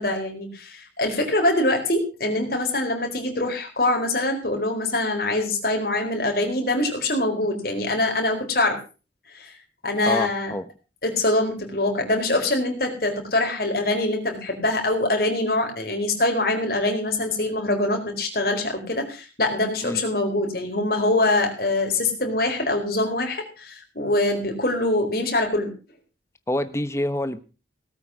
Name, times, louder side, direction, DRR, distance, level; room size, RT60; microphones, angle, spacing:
voice 1, 0.0-8.8 9.3-9.6 9.8-10.5 11.0-25.7, left 2 dB, 55° left, 3 dB, 4.5 m, -24 dB
voice 2, 10.0-10.7 19.8-20.0 26.5-27.4, left 1 dB, 15° left, 12 dB, 1.0 m, -26 dB
18.0 x 8.6 x 6.2 m, 0.35 s
head